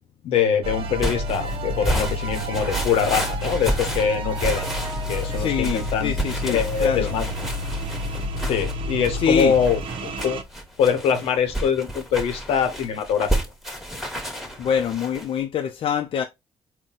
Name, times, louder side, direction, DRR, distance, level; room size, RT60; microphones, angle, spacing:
voice 1, 0.2-4.7 5.1-6.1 6.5-7.3 8.4-10.4 10.8-13.3, left 7 dB, 85° left, 0.8 m, -23 dB
sound 1, 0.6-10.4, equal, 65° right, 0.7 m, -29 dB
sound 2, 1.0-15.3, right 1 dB, ahead, 1.3 m, -31 dB
voice 2, 5.4-7.1 9.2-9.6 14.6-16.2, left 7 dB, 65° left, 0.5 m, -25 dB
4.1 x 2.2 x 3.7 m
supercardioid pair, 65°, 10 cm